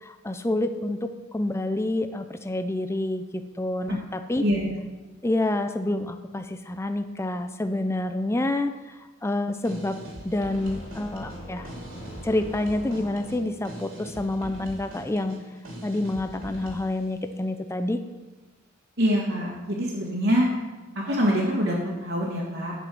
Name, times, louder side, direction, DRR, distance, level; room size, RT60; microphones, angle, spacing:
voice 1, 0.0-3.2 3.6-4.4 5.2-8.7 9.2-10.0 10.2-11.7 12.2-15.4 15.8-18.0, left 1 dB, 10° left, 8 dB, 0.5 m, -28 dB
voice 2, 4.4-4.7 19.0-20.5 20.9-22.7, equal, 55° right, -6 dB, 2.0 m, -25 dB
sound 1, 9.5-17.0, right 1 dB, 75° right, 2.8 m, -42 dB
sound 2, 10.5-13.7, equal, 35° left, 2.8 m, -43 dB
8.2 x 6.0 x 7.6 m, 1.2 s
head